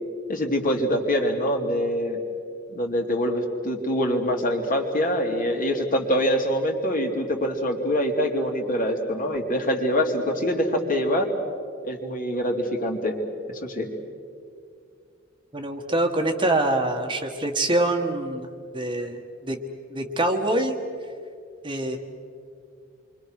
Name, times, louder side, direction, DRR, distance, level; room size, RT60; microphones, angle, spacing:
voice 1, 0.3-2.2 2.7-11.3 11.8-13.2 13.6-13.9, equal, 45° left, 2 dB, 3.0 m, -24 dB
voice 2, 15.5-18.5 18.7-19.2 19.4-19.6 19.9-20.8 21.6-22.0, right 1 dB, 25° right, 4 dB, 1.5 m, -24 dB
28.0 x 24.0 x 6.5 m, 2.4 s
head